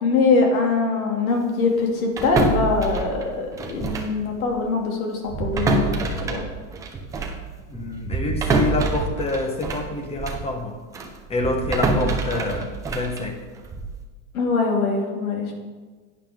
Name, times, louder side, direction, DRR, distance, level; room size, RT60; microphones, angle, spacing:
voice 1, 0.0-6.4 14.3-15.5, left 3 dB, 85° left, 1 dB, 2.5 m, -22 dB
sound 1, 2.2-4.2 4.5-4.7 5.3-10.5 10.9-14.0, right 3 dB, 10° right, 0.3 m, -26 dB
voice 2, 7.7-10.8 11.3-13.4, left 2 dB, 15° left, 5 dB, 0.9 m, -27 dB
11.0 x 9.1 x 3.6 m, 1.4 s
supercardioid pair, 145°, 42 cm